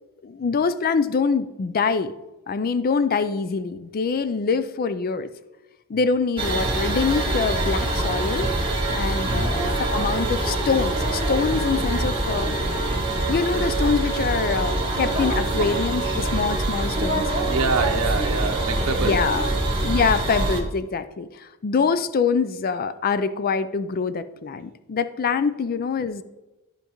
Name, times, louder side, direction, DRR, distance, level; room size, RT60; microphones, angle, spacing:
voice 1, 0.2-2.1 2.5-5.3 5.9-8.5 8.9-12.6 13.3-17.3 19.0-19.5 19.8-26.2, left 5 dB, 40° left, 13 dB, 0.4 m, -24 dB
sound 1, 6.4-20.6, right 2 dB, 25° right, 1.9 m, -24 dB
voice 2, 9.2-9.6 17.5-19.2, right 4 dB, 85° right, 3 dB, 0.8 m, -25 dB
12.5 x 5.2 x 3.0 m, 1.1 s
head